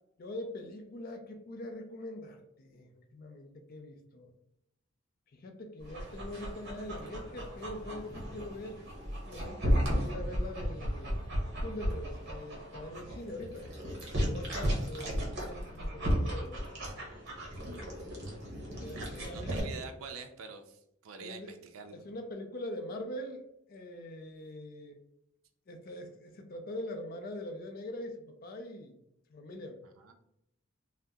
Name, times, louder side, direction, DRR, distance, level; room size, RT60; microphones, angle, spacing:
voice 1, 0.2-4.3 5.3-8.8 9.1-11.2 11.6-13.7 14.2-16.7 18.7-19.9 21.2-21.6 21.9-23.4 23.7-25.0 25.7-29.0 29.3-29.8, left 1 dB, 45° left, 4 dB, 0.4 m, -43 dB
Dog, 5.8-19.6, equal, 55° right, 0.9 m, -35 dB
voice 2, 18.5-22.0 30.0-30.1, right 5 dB, 80° right, 6 dB, 0.4 m, -47 dB
2.7 x 2.1 x 3.5 m, 0.79 s
head